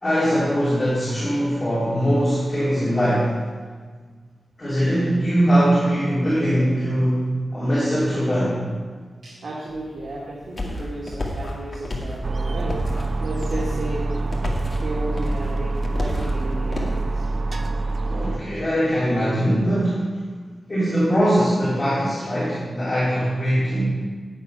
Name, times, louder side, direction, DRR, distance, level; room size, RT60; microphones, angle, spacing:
voice 1, 0.0-3.3 4.6-8.6 18.1-20.1 20.7-23.9, equal, 20° left, -12 dB, 3.7 m, -21 dB
voice 2, 9.2-12.8 13.2-14.1 14.8-17.3, right 2 dB, 75° right, -6 dB, 2.0 m, -33 dB
sound 1, 9.7-17.0, left 1 dB, 40° left, 1.8 m, -32 dB
sound 2, 12.2-18.4, right 3 dB, 40° right, 0.6 m, -26 dB
9.0 x 8.8 x 5.5 m, 1.5 s
wide cardioid pair, 180°, 0 cm